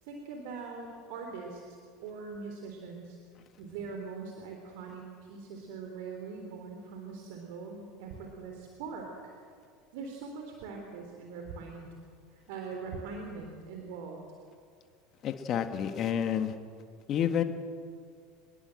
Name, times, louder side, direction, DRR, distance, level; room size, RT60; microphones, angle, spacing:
voice 1, 0.0-1.6 2.0-3.2 3.6-9.1 9.9-12.0 12.3-14.2, right 4 dB, 65° right, 2 dB, 3.6 m, -42 dB
voice 2, 15.2-16.5 17.1-17.4, left 9 dB, 45° left, 7 dB, 1.9 m, -29 dB
26.0 x 21.5 x 7.9 m, 2.2 s
hypercardioid pair, 75°, 0 cm